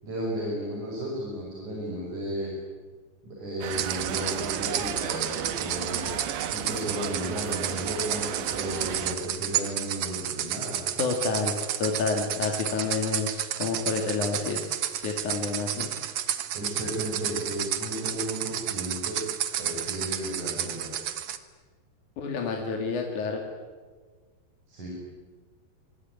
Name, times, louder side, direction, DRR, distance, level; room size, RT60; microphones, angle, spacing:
voice 1, 0.0-2.5 3.2-6.1 6.5-10.9 16.5-19.2 19.6-20.9 24.7-24.9, equal, 45° right, -3 dB, 7.5 m, -34 dB
sound 1, 3.6-9.2, right 9 dB, 85° right, 3.7 m, -34 dB
sound 2, 3.7-21.4, right 10 dB, 70° right, 1.7 m, -32 dB
voice 2, 11.0-15.9 22.2-23.4, left 4 dB, 50° left, 2 dB, 3.3 m, -29 dB
26.5 x 23.5 x 9.5 m, 1.4 s
omnidirectional pair, 5.0 m